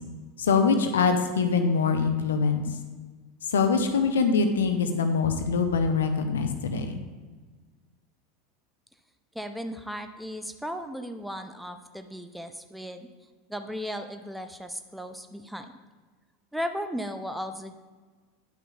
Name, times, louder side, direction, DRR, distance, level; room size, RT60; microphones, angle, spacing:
voice 1, 0.4-2.7 3.5-7.0, left 5 dB, 70° left, 7 dB, 0.6 m, -24 dB
voice 2, 9.3-13.1 13.5-15.7 16.5-17.8, equal, ahead, 8 dB, 0.5 m, -36 dB
10.0 x 5.8 x 2.3 m, 1.4 s
figure-of-eight pair, 80°, 0 cm